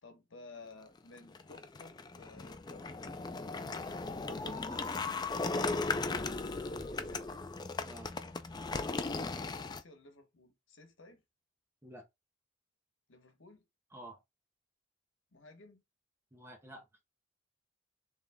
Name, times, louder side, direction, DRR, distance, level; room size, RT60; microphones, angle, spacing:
voice 1, 0.0-3.0 6.6-7.4 9.6-11.2 13.1-13.6 15.3-15.8, left 3 dB, 65° left, 1.1 m, -55 dB
sound 1, 1.2-9.8, left 3 dB, 20° left, 0.3 m, -37 dB
voice 2, 4.0-5.1 7.8-8.1 11.8-12.1 13.9-14.2 16.3-16.9, right 2 dB, 10° right, 0.9 m, -50 dB
3.5 x 3.2 x 3.5 m
head